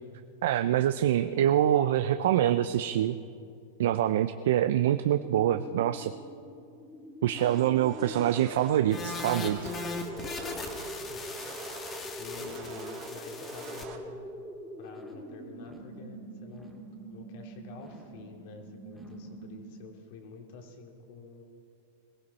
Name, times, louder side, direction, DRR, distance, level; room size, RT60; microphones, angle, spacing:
voice 1, 0.4-3.1 3.8-6.1 7.2-9.7, right 11 dB, 70° right, 10 dB, 0.5 m, -25 dB
sound 1, 5.1-20.0, equal, 5° left, 2.2 m, -44 dB
sound 2, 7.4-14.0, right 7 dB, 40° right, 1.7 m, -46 dB
sound 3, 8.9-13.8, left 3 dB, 20° left, 1.5 m, -39 dB
voice 2, 10.9-11.3 12.2-14.5 14.8-16.7 17.1-21.4, left 4 dB, 55° left, 2 dB, 2.7 m, -48 dB
21.5 x 15.5 x 4.2 m, 2.5 s
supercardioid pair, 140°, 0 cm